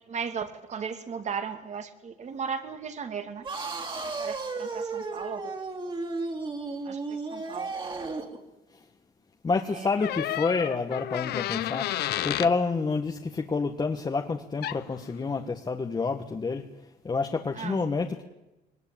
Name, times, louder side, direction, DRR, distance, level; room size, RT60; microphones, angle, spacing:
voice 1, 0.1-3.5 4.2-5.5 6.8-7.7 9.7-9.9 17.5-17.8, right 6 dB, 45° right, 8 dB, 2.6 m, -36 dB
sound 1, 3.4-8.4, right 3 dB, 30° right, 3.5 m, -34 dB
voice 2, 9.4-16.7 17.0-18.2, left 4 dB, 25° left, 3 dB, 1.5 m, -28 dB
sound 2, 10.0-12.5 14.6-14.8, left 14 dB, 70° left, 0.9 m, -31 dB
22.0 x 19.5 x 8.8 m, 0.97 s
cardioid pair, 110°, 17 cm